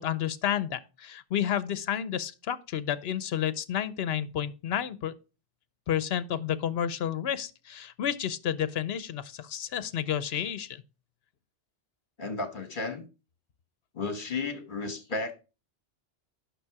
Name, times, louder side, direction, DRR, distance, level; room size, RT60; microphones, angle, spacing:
voice 1, 0.0-5.1 5.9-10.8, left 9 dB, 65° left, 0.9 m, -31 dB
voice 2, 12.2-13.0 13.9-15.3, left 3 dB, 50° left, 1.6 m, -33 dB
9.2 x 6.3 x 4.7 m
omnidirectional pair, 1.1 m